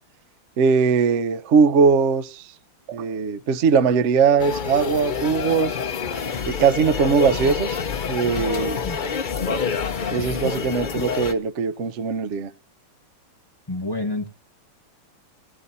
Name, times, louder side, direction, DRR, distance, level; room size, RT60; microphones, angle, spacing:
voice 1, 0.6-2.5 2.9-5.8 6.5-7.8 8.1-8.8 10.1-12.5, right 5 dB, 60° right, 0.7 m, -20 dB
sound 1, 4.4-11.3, left 6 dB, 85° left, 0.4 m, -27 dB
voice 2, 13.7-14.3, left 2 dB, 25° left, 0.5 m, -28 dB
16.5 x 12.5 x 4.1 m
omnidirectional pair, 2.3 m